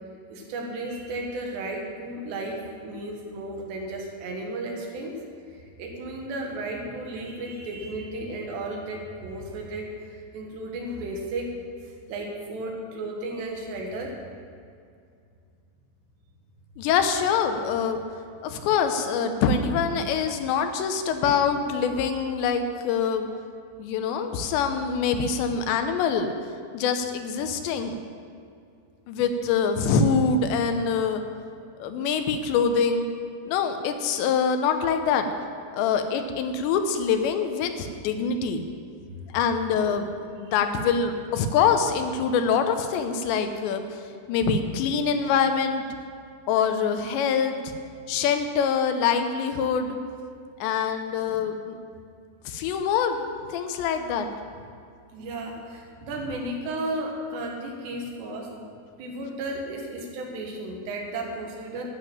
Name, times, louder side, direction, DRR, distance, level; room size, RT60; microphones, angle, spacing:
voice 1, 0.3-5.2 5.8-11.5 12.1-14.2 55.1-58.5 59.0-61.8, right 2 dB, 75° right, 0 dB, 3.7 m, -34 dB
voice 2, 16.8-18.0 18.4-23.3 23.8-26.3 26.7-28.0 29.1-31.2 31.8-33.1 33.5-35.3 35.7-38.6 39.3-40.1 40.4-44.0 44.3-45.8 46.5-47.7 48.1-50.0 50.6-51.8 52.5-53.2 53.5-54.3, left 6 dB, 85° left, 7 dB, 3.0 m, -24 dB
12.0 x 6.8 x 8.7 m, 2.4 s
omnidirectional pair, 5.1 m